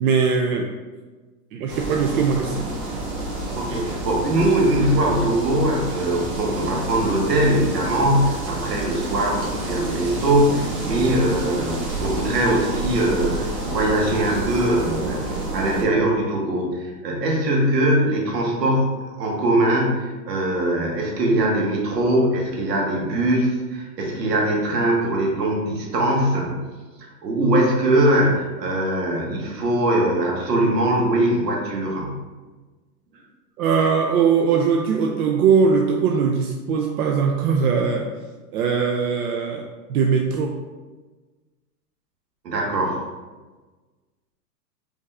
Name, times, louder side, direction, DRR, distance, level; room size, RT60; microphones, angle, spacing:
voice 1, 0.0-0.7 1.5-2.7 33.6-38.1 38.5-39.6 39.9-40.5, right 6 dB, 65° right, 2 dB, 0.6 m, -20 dB
sound 1, 1.7-15.8, right 2 dB, 35° right, 1.3 m, -29 dB
voice 2, 3.5-15.3 15.5-26.7 27.2-32.2 42.4-43.0, right 1 dB, 80° right, -1 dB, 1.4 m, -21 dB
5.1 x 2.6 x 3.3 m, 1.3 s
hypercardioid pair, 125°, 49 cm